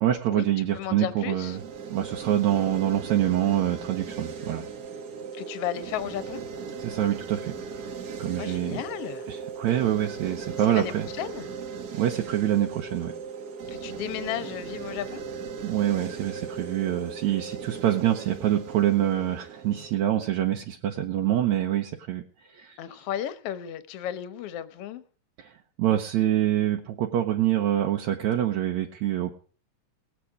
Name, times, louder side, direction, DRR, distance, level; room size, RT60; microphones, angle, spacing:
voice 1, 0.0-1.6 1.9-4.6 6.8-7.9 8.2-8.8 9.3-11.1 11.9-13.1 15.6-22.2 22.5-22.8 25.4-29.3, right 12 dB, 70° right, 2 dB, 2.3 m, -26 dB
voice 2, 0.7-1.6 5.3-6.4 8.4-9.3 10.7-11.5 13.7-15.2 22.8-25.0, left 11 dB, 65° left, 13 dB, 1.7 m, -34 dB
sound 1, 1.4-20.5, right 5 dB, 55° right, 1.1 m, -38 dB
19.5 x 8.5 x 4.9 m, 0.43 s
omnidirectional pair, 3.5 m